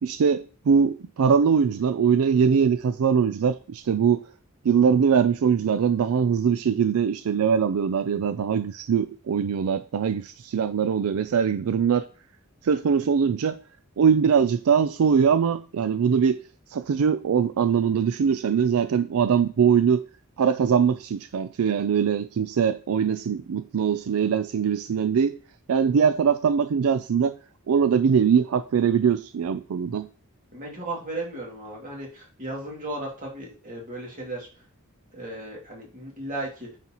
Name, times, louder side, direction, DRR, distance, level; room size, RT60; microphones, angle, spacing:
voice 1, 0.0-4.2 4.6-12.1 12.6-13.6 14.0-16.4 16.7-20.0 20.4-25.4 25.7-27.4 27.7-30.1, right 7 dB, 75° right, 0.4 m, -22 dB
voice 2, 30.5-34.5 35.1-36.7, right 2 dB, 40° right, 2.4 m, -35 dB
9.3 x 4.1 x 3.0 m
head